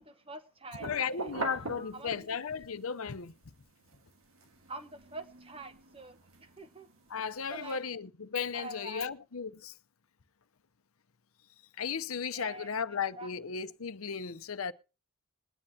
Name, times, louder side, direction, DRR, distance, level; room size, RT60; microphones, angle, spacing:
voice 1, 0.0-1.4 1.8-2.4 4.7-6.9 7.5-7.8 8.5-9.1 12.1-12.7 13.2-13.3, right 2 dB, 25° right, 1.1 m, -46 dB
voice 2, 0.8-3.3 7.1-9.7 11.8-14.7, left 6 dB, 80° left, 0.7 m, -35 dB
sound 1, 0.8-2.6 3.1-7.7, right 3 dB, 75° right, 1.7 m, -43 dB
21.5 x 9.8 x 2.8 m
head